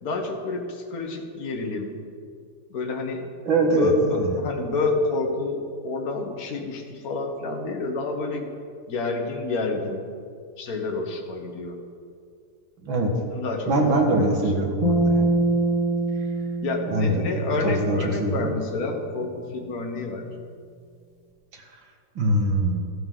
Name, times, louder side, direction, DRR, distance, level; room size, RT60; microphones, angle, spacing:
voice 1, 0.0-2.0 2.7-3.3 3.7-8.5 8.9-10.0 10.6-11.8 13.1-14.4 16.6-20.3, left 3 dB, 45° left, 2 dB, 1.7 m, -28 dB
voice 2, 3.5-4.4 12.8-13.1 13.7-15.4 16.9-17.3 17.6-18.5 21.5-21.6 22.2-22.8, right 2 dB, 60° right, 1 dB, 2.3 m, -23 dB
sound 1, 14.8-18.2, right 2 dB, 20° right, 1.2 m, -24 dB
14.5 x 12.5 x 3.9 m, 2.3 s
omnidirectional pair, 2.4 m